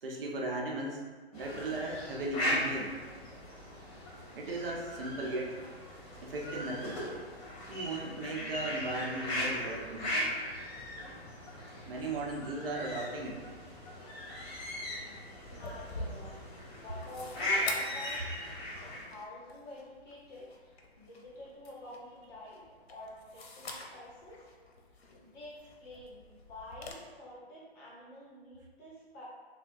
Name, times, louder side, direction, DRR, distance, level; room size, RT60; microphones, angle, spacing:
voice 1, 0.0-1.0 1.3-3.0 4.3-5.5 6.2-7.0 7.7-10.2 11.9-13.4, right 2 dB, 60° right, 0 dB, 0.8 m, -37 dB
sound 1, 1.3-19.0, left 1 dB, 35° left, 1.4 m, -38 dB
sound 2, 15.4-26.9, left 3 dB, 70° left, 0.8 m, -47 dB
voice 2, 15.6-18.2 18.8-22.6 22.9-24.5 25.2-29.3, left 1 dB, 20° left, -6 dB, 0.6 m, -49 dB
5.7 x 2.2 x 2.6 m, 1.4 s
hypercardioid pair, 140°, 32 cm